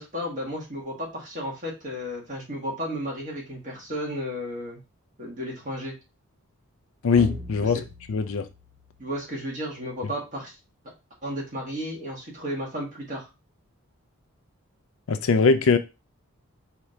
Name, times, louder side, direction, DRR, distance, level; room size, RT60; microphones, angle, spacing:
voice 1, 0.0-4.8 5.2-6.0 7.6-7.7 9.0-10.6 11.2-13.3, equal, 35° right, 1.8 m, -33 dB
voice 2, 7.0-7.8 8.1-8.5 15.1-15.8, left 4 dB, 65° left, 0.4 m, -21 dB
sound 1, 7.2-9.8, left 1 dB, 5° right, 1.3 m, -42 dB
4.8 x 2.8 x 3.2 m
head